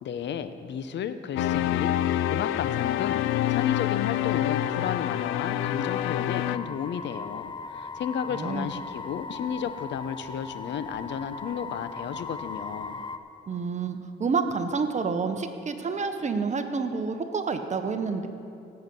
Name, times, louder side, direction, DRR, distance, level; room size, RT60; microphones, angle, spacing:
voice 1, 0.0-3.2 3.5-12.9, left 8 dB, 65° left, 11 dB, 0.7 m, -33 dB
sound 1, 1.4-6.6, left 12 dB, 90° left, 0.4 m, -27 dB
sound 2, 2.7-13.2, left 4 dB, 25° left, 0.6 m, -39 dB
voice 2, 8.3-8.7 13.5-18.3, right 4 dB, 35° right, 7 dB, 1.0 m, -29 dB
17.0 x 7.9 x 5.4 m, 2.6 s
cardioid pair, 90°, 20 cm